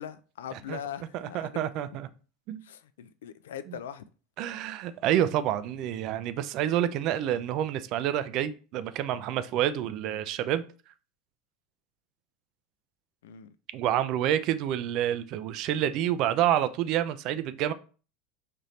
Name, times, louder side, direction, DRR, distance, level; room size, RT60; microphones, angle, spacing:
voice 1, 0.0-1.7 2.6-4.1 13.2-13.5, left 9 dB, 90° left, 0.3 m, -41 dB
voice 2, 1.1-2.1 2.5-2.6 3.7-3.8 4.4-10.6 13.7-17.7, right 11 dB, 55° right, 0.4 m, -28 dB
4.2 x 2.6 x 3.1 m
supercardioid pair, 110°, 0 cm